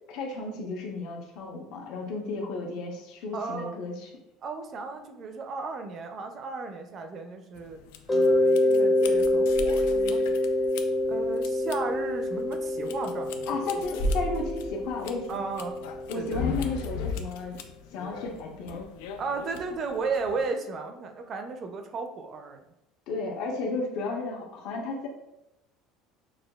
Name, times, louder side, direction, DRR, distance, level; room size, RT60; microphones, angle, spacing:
voice 1, 0.1-4.1 13.5-15.3 16.1-17.6 17.9-18.8 23.1-25.1, left 3 dB, 60° left, 0 dB, 0.8 m, -33 dB
voice 2, 3.3-3.8 4.4-7.8 8.1-10.2 11.1-13.4 15.3-15.8 16.1-16.5 19.2-22.6, right 4 dB, 30° right, 5 dB, 0.4 m, -34 dB
sound 1, 7.5-20.4, left 2 dB, 90° left, 0.4 m, -37 dB
Mallet percussion, 8.1-16.7, left 1 dB, 15° left, 0.6 m, -26 dB
6.3 x 2.3 x 2.3 m, 0.88 s
cardioid pair, 165°, 0 cm